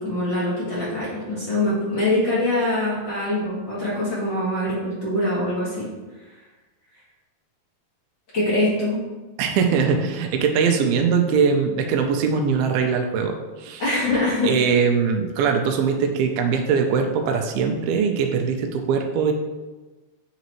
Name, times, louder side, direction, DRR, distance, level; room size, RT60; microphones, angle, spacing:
voice 1, 0.0-5.9 8.3-9.0 13.8-14.5, left 1 dB, 45° left, -8 dB, 1.6 m, -23 dB
voice 2, 9.4-13.8 14.4-19.3, right 6 dB, 80° right, 4 dB, 2.3 m, -21 dB
9.1 x 3.9 x 3.0 m, 1.2 s
omnidirectional pair, 4.7 m